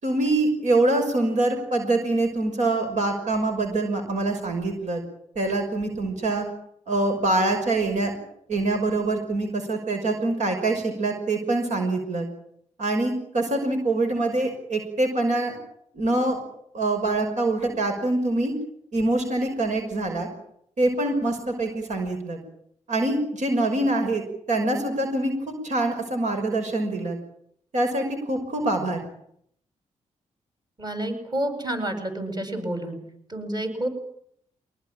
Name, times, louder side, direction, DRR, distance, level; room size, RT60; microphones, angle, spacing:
voice 1, 0.0-5.0 5.4-6.4 6.9-8.1 8.5-12.3 12.8-15.5 15.9-16.4 16.7-18.5 18.9-20.3 20.8-22.4 22.9-24.2 24.5-25.3 25.6-27.2 27.7-29.0, right 2 dB, 65° right, 4 dB, 5.9 m, -24 dB
voice 2, 30.8-33.0 33.3-33.9, right 1 dB, 30° right, 7 dB, 7.9 m, -29 dB
24.5 x 19.0 x 9.0 m, 0.70 s
cardioid pair, 65°, 13 cm